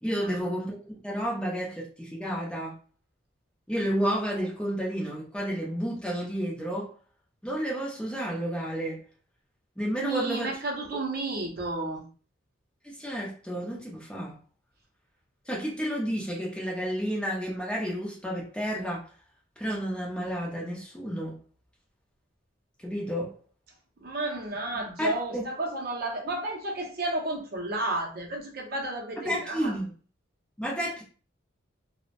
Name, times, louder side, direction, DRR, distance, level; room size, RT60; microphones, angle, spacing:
voice 1, 0.0-2.7 3.7-6.9 7.4-9.0 9.8-10.6 12.8-14.4 15.5-19.1 19.6-21.4 22.8-23.4 25.0-25.4 29.2-29.9 30.6-31.0, equal, 5° left, 0.5 m, -31 dB
voice 2, 10.0-12.0 24.0-29.7, right 2 dB, 50° right, 0.5 m, -32 dB
2.7 x 2.0 x 2.5 m
head